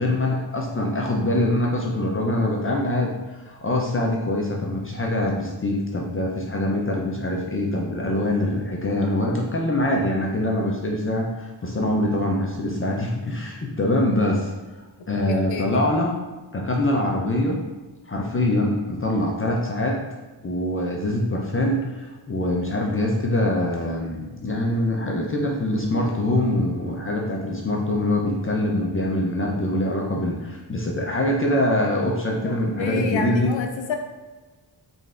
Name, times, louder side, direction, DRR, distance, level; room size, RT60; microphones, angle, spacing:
voice 1, 0.0-14.5 15.1-16.2 16.5-17.6 18.1-20.0 20.4-33.6, left 1 dB, 30° left, -2 dB, 0.5 m, -24 dB
voice 2, 15.3-15.8 32.4-34.0, left 5 dB, 85° left, 4 dB, 0.6 m, -29 dB
3.9 x 3.2 x 2.4 m, 1.2 s
wide cardioid pair, 130°, 43 cm